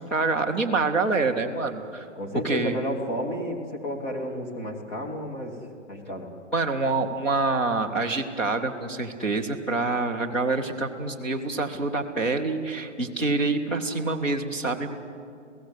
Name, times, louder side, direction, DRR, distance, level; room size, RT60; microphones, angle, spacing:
voice 1, 0.0-2.1 2.4-2.8 6.5-15.0, right 3 dB, 5° left, -1 dB, 0.5 m, -26 dB
voice 2, 2.1-5.6 5.9-6.3, equal, 25° left, 2 dB, 3.0 m, -31 dB
28.5 x 17.0 x 8.1 m, 2.3 s
hypercardioid pair, 160°, 37 cm